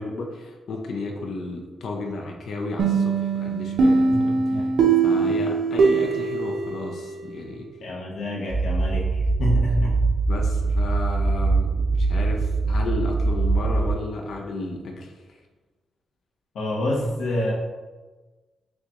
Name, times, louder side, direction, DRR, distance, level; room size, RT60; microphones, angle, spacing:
voice 1, 0.0-4.7 5.0-7.7 10.3-15.4, left 2 dB, 60° left, 1 dB, 0.5 m, -33 dB
sound 1, 2.8-7.5, right 4 dB, 85° right, 0.6 m, -22 dB
voice 2, 7.8-10.0 16.5-17.5, left 1 dB, 90° left, -4 dB, 0.9 m, -27 dB
sound 2, 8.5-13.9, right 3 dB, 35° right, 1.4 m, -22 dB
6.3 x 2.3 x 3.0 m, 1.3 s
wide cardioid pair, 150°, 0 cm